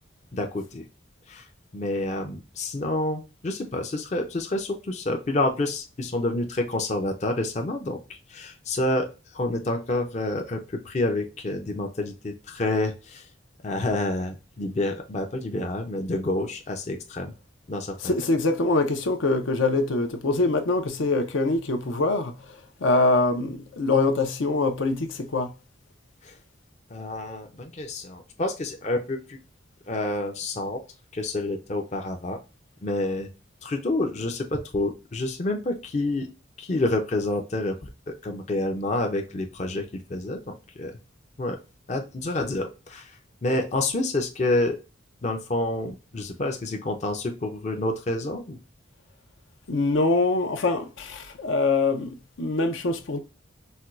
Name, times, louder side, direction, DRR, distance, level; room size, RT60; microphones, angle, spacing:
voice 1, 0.3-0.8 1.3-1.5 1.7-13.2 13.6-17.3 17.7-18.1 26.2-26.3 26.9-29.4 29.9-30.8 31.1-32.4 32.8-33.3 33.6-36.3 36.6-37.8 38.1-40.9 41.4-41.6 41.9-43.2 43.4-44.8 45.2-48.6, left 2 dB, 35° left, 0.5 m, -28 dB
voice 2, 18.0-25.5 49.7-53.2, left 3 dB, 75° left, 0.6 m, -24 dB
4.2 x 2.2 x 2.4 m
head